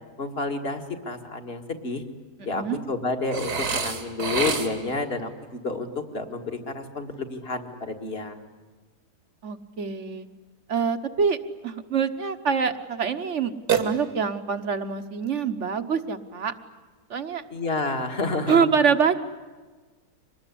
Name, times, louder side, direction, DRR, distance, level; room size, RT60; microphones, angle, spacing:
voice 1, 0.2-2.0 2.4-8.4 17.5-18.7, left 3 dB, 40° left, 5 dB, 2.2 m, -30 dB
voice 2, 2.4-2.8 9.4-10.3 10.7-11.4 11.6-16.5 17.1-17.4 18.5-19.2, right 6 dB, 50° right, 10 dB, 1.4 m, -25 dB
Burping eructation, 3.3-5.0 13.7-14.5, right 5 dB, 80° right, 2.7 m, -28 dB
25.0 x 20.5 x 10.0 m, 1.3 s
omnidirectional pair, 1.7 m